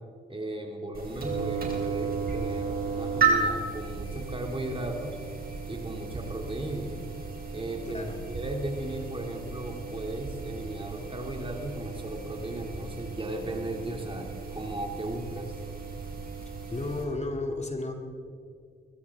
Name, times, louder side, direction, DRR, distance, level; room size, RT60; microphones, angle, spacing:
voice 1, 0.3-5.2 5.7-6.9 7.5-15.6, right 1 dB, 25° right, 2 dB, 2.5 m, -36 dB
sound 1, 0.9-17.0, right 5 dB, 50° right, 3.9 m, -34 dB
voice 2, 7.9-8.2 16.7-17.9, left 2 dB, 35° left, 3 dB, 2.4 m, -33 dB
21.0 x 15.5 x 3.6 m, 2.2 s
supercardioid pair, 50°, 20 cm